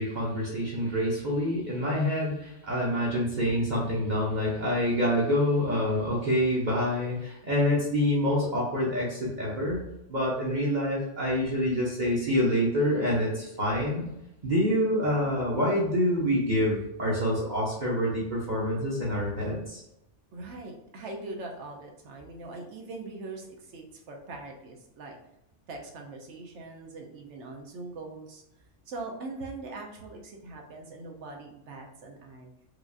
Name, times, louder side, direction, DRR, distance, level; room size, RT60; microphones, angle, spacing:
voice 1, 0.0-9.8 10.1-14.1 14.4-19.8, equal, 45° right, -5 dB, 0.8 m, -27 dB
voice 2, 20.3-25.2 25.7-28.4 28.9-32.5, right 2 dB, 75° right, 1 dB, 1.0 m, -41 dB
4.7 x 2.5 x 2.5 m, 0.86 s
omnidirectional pair, 1.2 m